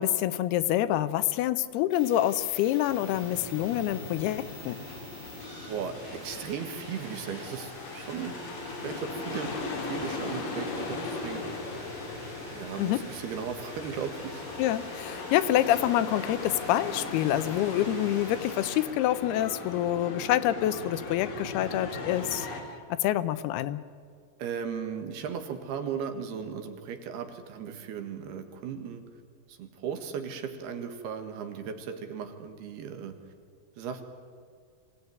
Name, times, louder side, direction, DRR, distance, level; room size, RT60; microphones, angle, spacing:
voice 1, 0.0-4.8 12.8-13.0 14.6-22.5 22.9-23.8, left 13 dB, 85° left, 13 dB, 2.8 m, -27 dB
sound 1, 1.9-18.8, left 1 dB, 25° left, 8.0 m, -45 dB
sound 2, 2.8-22.6, left 3 dB, 60° left, 4.3 m, -39 dB
voice 2, 5.6-8.4 8.8-11.4 12.5-14.4 24.4-29.0 29.5-33.2 33.8-34.0, right 7 dB, 85° right, 6 dB, 3.7 m, -36 dB
24.5 x 17.0 x 9.4 m, 2.1 s
omnidirectional pair, 4.5 m